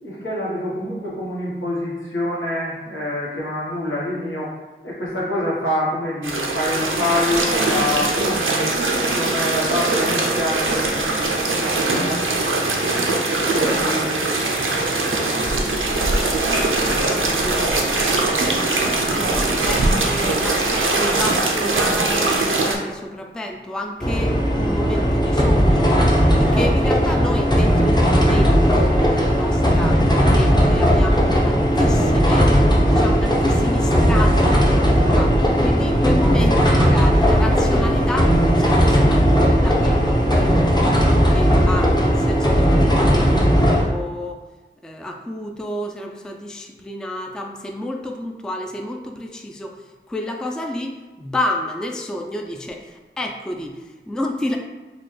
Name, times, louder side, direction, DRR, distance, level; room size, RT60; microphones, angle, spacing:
voice 1, 0.0-4.6 4.8-12.8 13.3-18.9 19.3-19.6 24.7-25.5, left 1 dB, 80° left, -7 dB, 1.1 m, -28 dB
sound 1, 6.2-22.8, right 2 dB, 80° right, 0.5 m, -21 dB
voice 2, 19.1-32.6 32.9-39.2 39.6-40.7 41.3-44.4 44.8-54.6, left 1 dB, 5° left, 2 dB, 0.3 m, -30 dB
sound 2, 24.0-43.8, equal, 20° left, 0.7 m, -17 dB
4.1 x 2.3 x 3.1 m, 1.2 s
wide cardioid pair, 45°, 20 cm